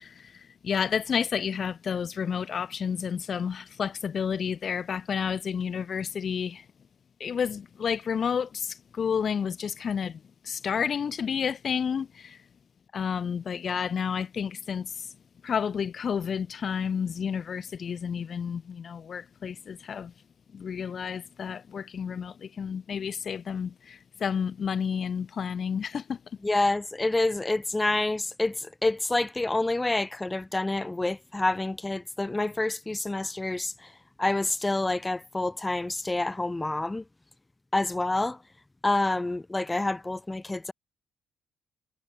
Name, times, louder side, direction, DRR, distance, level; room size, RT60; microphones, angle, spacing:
voice 1, 0.0-6.7 7.2-12.4 12.9-15.1 15.4-20.1 20.5-26.2 26.5-26.7, left 7 dB, 50° left, 0.4 m, -31 dB
voice 2, 26.4-33.9 34.2-37.0 37.7-38.4 38.8-40.7, left 2 dB, 15° left, 0.8 m, -28 dB
cardioid pair, 90°, 0 cm